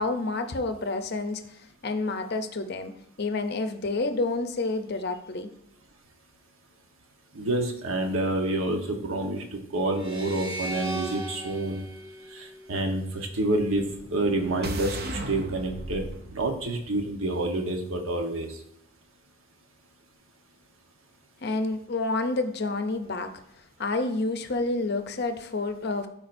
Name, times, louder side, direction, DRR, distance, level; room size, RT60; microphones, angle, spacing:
voice 1, 0.0-2.9 3.2-5.5 21.4-23.3 23.8-26.1, left 3 dB, 50° left, 8 dB, 0.6 m, -29 dB
voice 2, 7.3-11.8 12.3-13.8 14.1-16.0 16.3-18.5, right 2 dB, 70° right, 3 dB, 1.1 m, -28 dB
sound 1, 10.0-13.2, equal, 20° right, 1.2 m, -38 dB
sound 2, 13.5-17.7, right 2 dB, 45° right, 0.5 m, -38 dB
13.5 x 4.6 x 2.6 m, 0.75 s
head